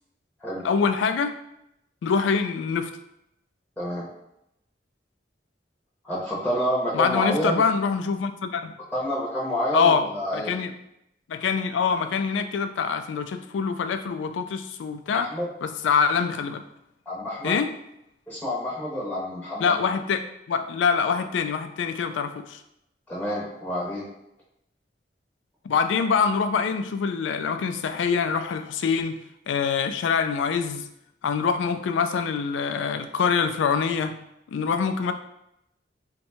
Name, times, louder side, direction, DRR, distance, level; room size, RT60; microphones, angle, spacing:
voice 1, 0.6-1.4 2.0-2.9 6.9-8.7 9.7-10.0 10.3-10.7 11.3-15.3 15.6-16.6 17.4-17.7 19.6-22.6 25.6-29.2 29.5-30.9 31.2-34.2 34.5-35.1, left 6 dB, 85° left, 8 dB, 0.3 m, -24 dB
voice 2, 3.8-4.1 6.0-7.6 8.9-10.5 15.1-15.5 17.1-17.5 18.3-19.8 23.1-24.1, equal, 5° left, -7 dB, 0.7 m, -28 dB
2.7 x 2.2 x 4.1 m, 0.81 s
head